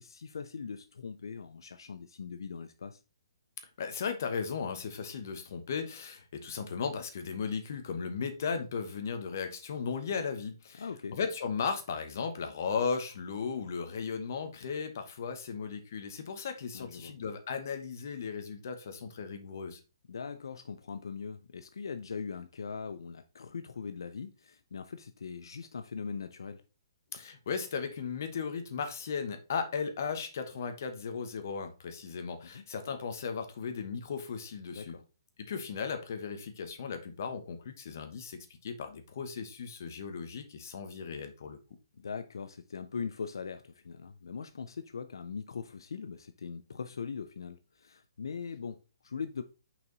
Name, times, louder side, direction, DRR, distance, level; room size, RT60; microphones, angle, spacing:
voice 1, 0.0-3.0 10.8-11.2 16.7-17.1 20.1-26.6 32.5-32.6 34.7-35.0 42.0-48.8 49.0-49.4, left 5 dB, 70° left, 0.5 m, -41 dB
voice 2, 3.8-10.9 11.1-19.8 27.1-35.0 35.4-41.6, left 5 dB, 40° left, 1.1 m, -36 dB
5.8 x 4.7 x 3.9 m
hypercardioid pair, 180°, 2 cm